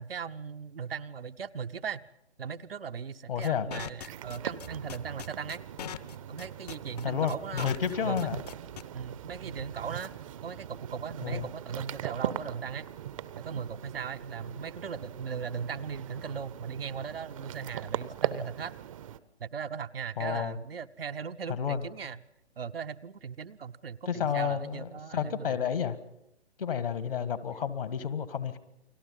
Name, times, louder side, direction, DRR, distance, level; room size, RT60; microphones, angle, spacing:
voice 1, 0.0-2.0 2.4-5.6 6.3-7.8 8.0-8.3 8.9-10.1 10.4-12.9 13.4-18.7 19.4-22.2 22.6-25.6, right 6 dB, 60° right, 8 dB, 0.8 m, -38 dB
voice 2, 3.3-3.7 7.0-8.4 11.2-11.5 20.2-20.6 21.6-21.8 24.1-26.0 26.6-28.6, left 8 dB, 55° left, 13 dB, 1.8 m, -31 dB
sound 1, 3.4-8.8, left 10 dB, 40° left, 1.0 m, -40 dB
cat swallow, 4.1-19.2, right 10 dB, 30° right, 0.8 m, -40 dB
29.5 x 21.0 x 5.5 m, 0.84 s
figure-of-eight pair, 130°, 33 cm